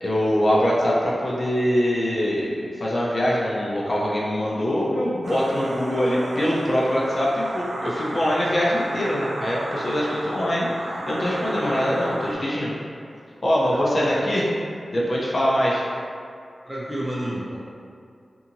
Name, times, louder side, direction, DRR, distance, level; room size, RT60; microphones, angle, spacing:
voice 1, 0.0-12.7 13.4-14.5 14.9-15.8, equal, 50° left, -5 dB, 0.5 m, -23 dB
sound 1, 5.2-12.4, right 1 dB, 60° right, 0.4 m, -33 dB
voice 2, 16.7-17.6, right 1 dB, 10° right, -8 dB, 0.8 m, -30 dB
2.7 x 2.7 x 2.6 m, 2.4 s
cardioid pair, 55°, 0 cm